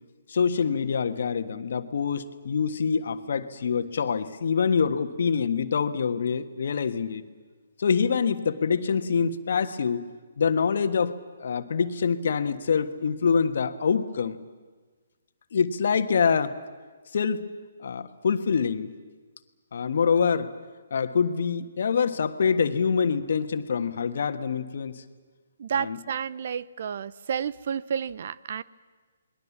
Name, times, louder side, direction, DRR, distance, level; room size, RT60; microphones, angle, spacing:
voice 1, 0.3-7.2 7.8-10.1 10.4-14.4 15.5-16.6 17.1-17.5 17.8-18.9 19.7-20.5 20.9-25.0 25.8-26.0, left 6 dB, 65° left, 10 dB, 1.5 m, -25 dB
voice 2, 25.6-28.6, right 7 dB, 55° right, 19 dB, 0.7 m, -31 dB
28.5 x 21.5 x 7.3 m, 1.4 s
hypercardioid pair, 145°, 0 cm